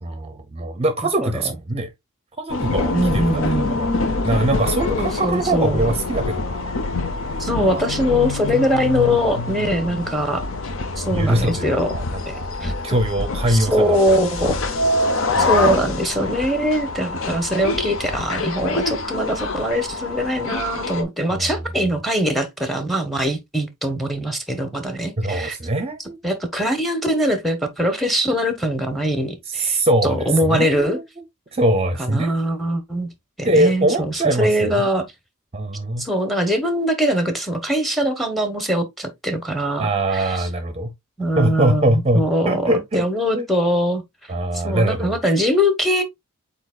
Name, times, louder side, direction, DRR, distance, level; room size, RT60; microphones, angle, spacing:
voice 1, 0.0-1.9 2.4-3.9 4.2-6.8 7.6-7.9 11.1-14.0 15.3-15.8 21.3-21.6 25.2-26.2 29.5-31.2 31.5-32.3 33.4-34.9 35.5-36.0 39.8-40.9 41.4-43.0 43.3-43.5 44.3-45.2, right 1 dB, 30° right, 0.6 m, -22 dB
sound 1, 2.5-21.0, left 3 dB, 65° left, 0.7 m, -25 dB
voice 2, 2.9-3.8 4.9-5.9 7.4-10.4 11.0-11.9 12.3-12.4 12.6-12.7 13.5-14.6 15.4-25.6 26.2-31.0 32.0-33.1 33.4-35.1 36.0-40.5 41.2-44.0 44.6-46.0, equal, ahead, 0.9 m, -22 dB
8.0 x 2.8 x 2.3 m
head